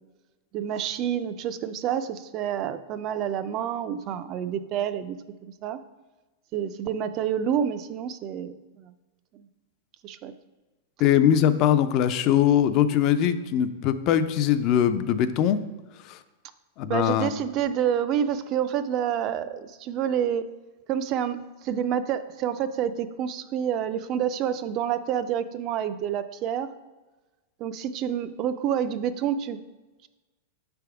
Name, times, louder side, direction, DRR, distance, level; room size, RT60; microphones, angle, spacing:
voice 1, 0.5-5.2 5.4-5.8 6.5-8.9 9.3-9.4 10.0-10.3 16.9-20.4 20.9-26.7 27.6-29.6, right 9 dB, 40° right, 12 dB, 0.3 m, -28 dB
voice 2, 11.0-15.6 16.0-16.2 16.8-17.3, left 10 dB, 40° left, 11 dB, 0.4 m, -21 dB
5.9 x 3.4 x 4.7 m, 1.2 s
supercardioid pair, 135°, 0 cm